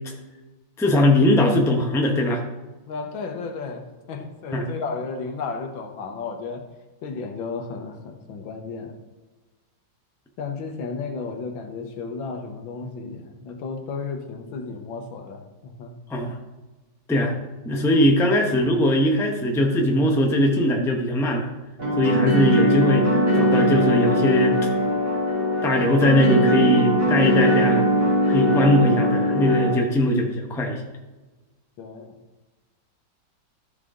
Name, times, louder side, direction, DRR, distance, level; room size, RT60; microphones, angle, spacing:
voice 1, 0.8-2.4 4.5-4.7 16.1-16.4 17.1-17.3 17.6-21.5 22.0-23.1 23.3-24.6 25.6-27.9 28.3-30.8, left 1 dB, 5° left, 1 dB, 0.5 m, -20 dB
voice 2, 2.9-6.7 7.0-9.0 10.4-15.9 28.4-28.6 31.8-32.2, left 4 dB, 85° left, 4 dB, 1.8 m, -33 dB
sound 1, 21.8-29.7, equal, 45° right, 2.9 m, -20 dB
13.5 x 4.9 x 3.7 m, 1.2 s
omnidirectional pair, 2.1 m